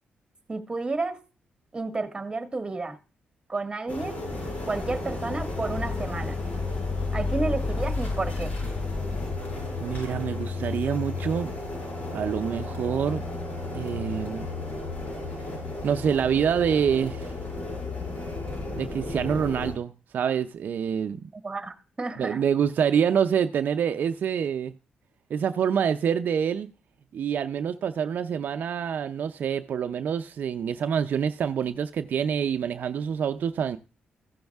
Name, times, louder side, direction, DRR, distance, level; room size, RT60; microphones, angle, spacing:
voice 1, 0.5-1.2 1.7-3.0 3.5-4.2 4.7-6.4 7.1-8.5 21.3-22.4, right 3 dB, 25° right, 1.7 m, -31 dB
sound 1, 3.9-19.7, left 3 dB, 55° left, 7.0 m, -33 dB
sound 2, 4.3-9.4, left 3 dB, 20° left, 0.7 m, -33 dB
voice 2, 9.8-11.5 12.1-13.3 13.7-14.5 15.8-17.3 18.8-21.3 22.2-24.7 25.3-26.7 27.1-33.8, right 8 dB, 65° right, 0.5 m, -26 dB
15.0 x 6.3 x 3.5 m
cardioid pair, 80°, 3 cm